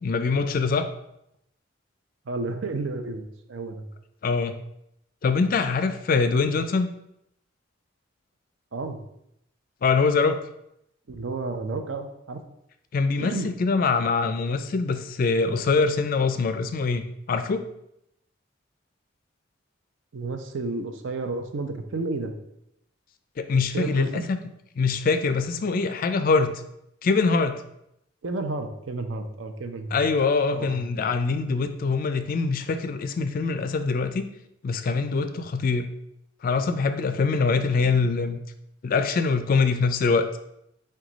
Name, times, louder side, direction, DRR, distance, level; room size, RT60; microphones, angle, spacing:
voice 1, 0.0-0.9 4.2-4.6 5.2-6.9 9.8-10.4 12.9-17.6 23.4-24.4 24.8-26.6 27.0-27.6 29.9-34.3 34.6-35.9 36.4-38.4 38.8-40.3, left 4 dB, 45° left, 9 dB, 0.3 m, -23 dB
voice 2, 2.3-3.2 3.5-3.8 8.7-9.0 11.1-12.4 13.2-13.5 20.1-22.3 23.7-24.2 28.2-30.0 30.5-30.8, right 3 dB, 70° right, 6 dB, 0.6 m, -31 dB
6.0 x 2.3 x 3.9 m, 0.79 s
head